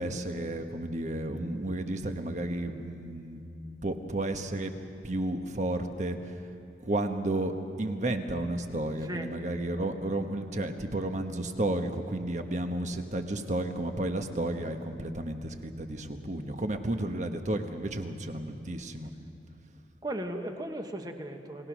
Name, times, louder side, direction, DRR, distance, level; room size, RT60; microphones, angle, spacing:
voice 1, 0.0-3.4 3.8-4.7 5.0-6.4 6.8-19.1, right 1 dB, 45° right, 6 dB, 1.3 m, -32 dB
voice 2, 9.0-9.3 20.0-21.7, right 1 dB, 20° right, 5 dB, 1.3 m, -36 dB
28.5 x 19.0 x 6.3 m, 2.6 s
head